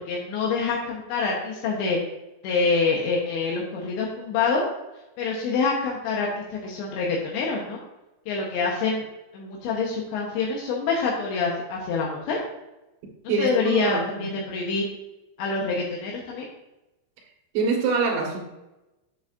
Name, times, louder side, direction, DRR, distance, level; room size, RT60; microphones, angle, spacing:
voice 1, 0.0-2.0 2.4-4.6 5.2-7.8 8.3-9.0 9.3-12.4 13.2-14.8 15.4-16.5, left 4 dB, 80° left, -2 dB, 3.3 m, -26 dB
voice 2, 13.3-14.3 17.5-18.4, right 4 dB, 80° right, -2 dB, 4.1 m, -25 dB
10.5 x 8.0 x 2.6 m, 0.99 s
omnidirectional pair, 5.3 m